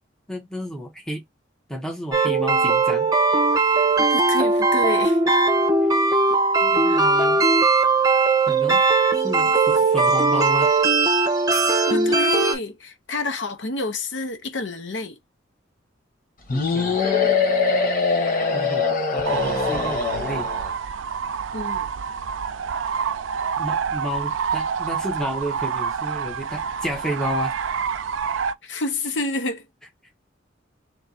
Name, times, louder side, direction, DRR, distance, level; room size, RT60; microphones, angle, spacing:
voice 1, 0.3-1.2 1.7-3.1 6.6-7.4 8.5-8.8 9.2-10.7 16.5-17.0 18.5-18.8 19.1-20.5 23.6-27.5, equal, 5° left, 1.1 m, -31 dB
sound 1, 2.1-12.5, right 3 dB, 20° right, 1.0 m, -19 dB
voice 2, 4.0-5.2 6.9-7.1 11.9-15.2 21.5-21.9 28.6-29.7, left 2 dB, 70° left, 0.9 m, -29 dB
sound 2, 16.5-20.7, left 4 dB, 50° left, 1.3 m, -22 dB
sound 3, 19.2-28.5, right 6 dB, 90° right, 0.4 m, -27 dB
3.4 x 3.0 x 4.1 m
head